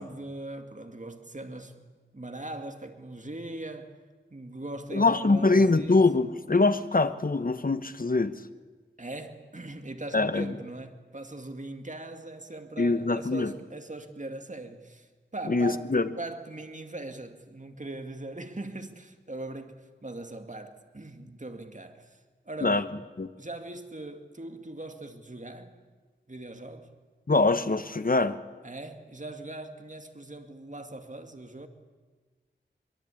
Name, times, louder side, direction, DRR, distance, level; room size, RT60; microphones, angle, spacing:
voice 1, 0.0-1.9 2.1-3.9 4.3-6.0 9.0-15.9 16.2-22.2 22.4-22.9 23.4-25.8 26.3-26.9 28.6-31.7, right 2 dB, 40° right, 2.3 m, -40 dB
voice 2, 4.9-8.3 10.1-10.5 12.8-13.5 15.5-16.1 22.6-22.8 23.2-23.3 27.3-28.4, left 3 dB, 45° left, 1.1 m, -23 dB
22.5 x 22.5 x 8.5 m
wide cardioid pair, 55°, 20 cm